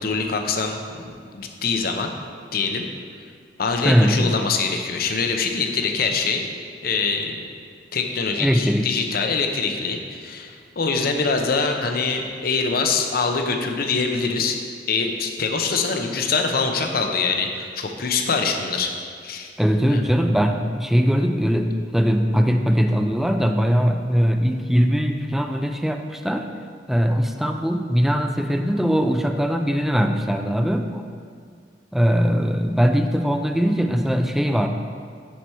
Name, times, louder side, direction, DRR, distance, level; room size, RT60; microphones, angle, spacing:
voice 1, 0.0-2.1 2.5-2.9 3.6-6.5 6.8-7.5 7.9-14.6 14.9-18.9 19.2-19.5 19.9-20.0, left 4 dB, 60° left, 4 dB, 0.7 m, -24 dB
voice 2, 3.8-4.3 8.4-8.9 19.6-26.5 26.9-31.0 31.9-34.7, equal, ahead, 5 dB, 0.4 m, -20 dB
10.0 x 4.7 x 4.4 m, 2.1 s
head